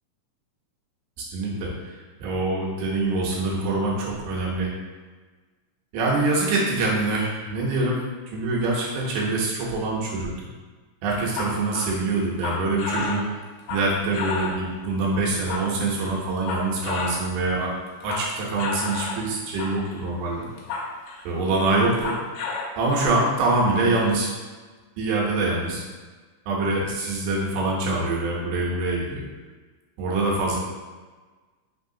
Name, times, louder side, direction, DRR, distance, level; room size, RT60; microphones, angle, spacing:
voice 1, 1.2-1.7 2.2-4.7 5.9-10.3 11.0-13.2 13.7-17.7 18.0-20.5 21.3-22.1 22.8-24.3 25.0-25.8 26.5-29.2 30.0-30.6, right 2 dB, 80° right, -3 dB, 2.4 m, -24 dB
sound 1, 11.1-14.7 15.2-17.2 17.6-19.2 19.6-20.0 20.4-21.4 21.8-22.7, left 4 dB, 90° left, 2.3 m, -32 dB
5.5 x 3.5 x 2.6 m, 1.3 s
omnidirectional pair, 3.7 m